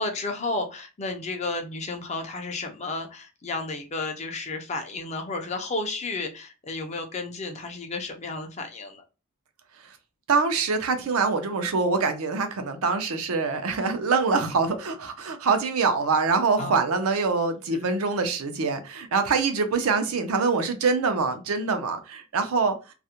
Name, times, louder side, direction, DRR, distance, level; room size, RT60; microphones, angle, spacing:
voice 1, 0.0-9.0 16.6-16.7, left 3 dB, 30° left, 0.4 m, -32 dB
voice 2, 10.3-22.7, right 4 dB, 85° right, 0.5 m, -24 dB
2.4 x 2.1 x 2.8 m
head